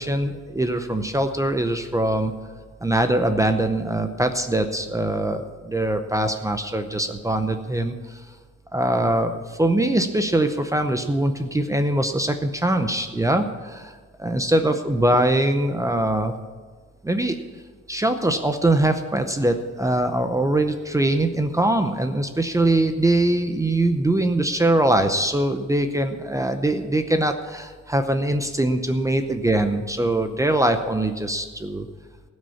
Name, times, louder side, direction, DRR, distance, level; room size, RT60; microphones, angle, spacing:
voice 1, 0.0-2.3 2.8-7.9 8.7-16.3 17.0-17.4 17.9-31.9, right 1 dB, 10° right, 7 dB, 0.7 m, -22 dB
16.5 x 6.4 x 7.1 m, 1.4 s
cardioid pair, 140°, 30 cm